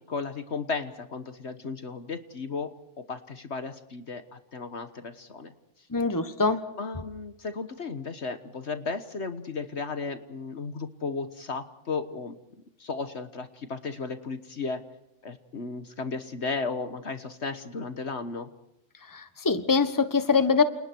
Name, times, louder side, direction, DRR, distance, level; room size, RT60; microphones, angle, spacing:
voice 1, 0.1-2.7 3.1-5.5 6.8-12.3 12.8-14.8 15.2-18.5, left 4 dB, 60° left, 10 dB, 1.6 m, -34 dB
voice 2, 5.9-6.6 19.1-20.6, left 4 dB, 15° left, 10 dB, 1.4 m, -23 dB
29.5 x 29.0 x 4.6 m, 0.84 s
omnidirectional pair, 1.3 m